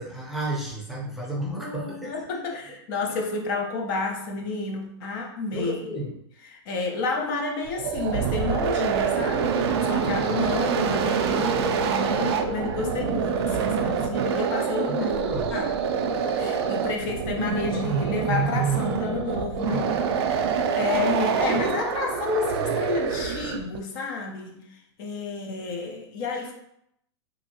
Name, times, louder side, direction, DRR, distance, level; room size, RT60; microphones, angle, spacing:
voice 1, 0.0-2.1 5.5-6.2 14.9-15.6, right 1 dB, ahead, -4 dB, 0.6 m, -32 dB
voice 2, 1.6-5.8 6.5-15.2 15.5-15.7 16.4-20.5 20.8-24.6 25.0-26.5, left 3 dB, 50° left, 1 dB, 0.5 m, -30 dB
sound 1, 7.7-23.8, right 6 dB, 65° right, 0.4 m, -26 dB
2.8 x 2.5 x 2.8 m, 0.76 s
hypercardioid pair, 140°, 15 cm